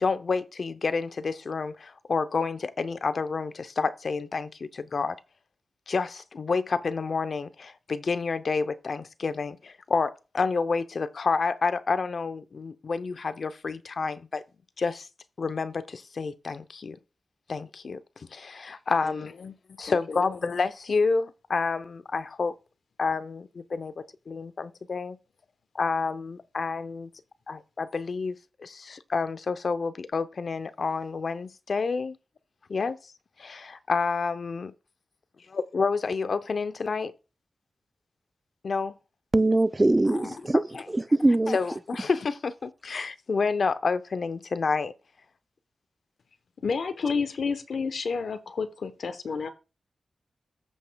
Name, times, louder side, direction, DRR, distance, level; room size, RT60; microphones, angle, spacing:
voice 1, 0.0-5.1 5.9-14.4 14.8-15.1 15.4-17.0 17.5-18.0 18.3-19.3 19.8-22.5 23.0-23.9 24.3-25.2 25.7-27.1 27.5-32.2 32.7-33.0 33.4-34.7 35.5-37.1 38.6-38.9 40.1-40.4 40.7-40.8 41.5-44.9, left 4 dB, 60° left, 0.6 m, -29 dB
voice 2, 19.0-19.5 19.9-20.4 46.6-49.5, left 5 dB, 80° left, 0.9 m, -31 dB
voice 3, 39.3-41.6, right 2 dB, 25° right, 0.5 m, -22 dB
15.0 x 5.3 x 2.3 m
wide cardioid pair, 80°, 0 cm